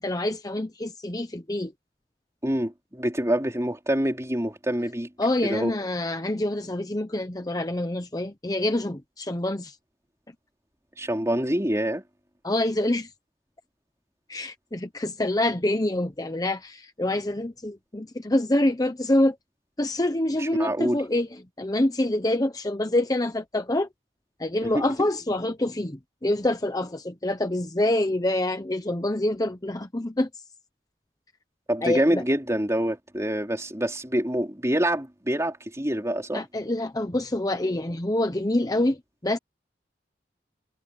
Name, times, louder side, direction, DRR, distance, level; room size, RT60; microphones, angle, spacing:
voice 1, 0.0-1.7 5.2-9.8 12.4-13.1 14.3-19.4 19.8-23.9 24.4-30.3 31.8-32.2 36.3-39.4, left 1 dB, 20° left, 0.9 m, -26 dB
voice 2, 2.4-5.1 5.4-5.7 11.0-12.0 20.4-21.0 24.7-24.8 31.7-36.4, right 1 dB, 15° right, 4.0 m, -26 dB
head